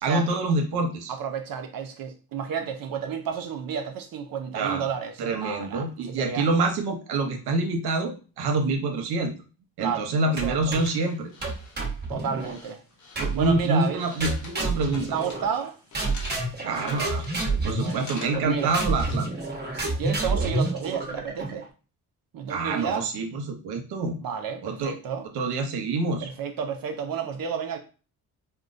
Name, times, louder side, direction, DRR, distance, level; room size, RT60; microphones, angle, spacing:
voice 1, 0.0-1.1 4.5-4.8 5.2-9.3 9.8-11.3 13.2-15.1 16.6-17.2 17.6-19.2 22.5-24.2 24.6-24.9 25.3-26.3, right 3 dB, 90° right, 0.9 m, -26 dB
voice 2, 1.1-6.5 9.8-10.7 12.1-12.8 13.3-14.0 15.1-15.8 16.8-17.0 17.8-18.8 19.7-21.7 22.3-23.1 24.2-25.2 26.2-27.8, right 7 dB, 65° right, 0.6 m, -31 dB
sound 1, 10.2-19.5, left 3 dB, 50° left, 1.0 m, -45 dB
sound 2, 10.4-11.0 11.4-12.6 13.2-13.7 14.2-15.7 15.9-21.6, right 2 dB, 25° right, 1.2 m, -29 dB
4.5 x 2.2 x 2.6 m
cardioid pair, 90°, 37 cm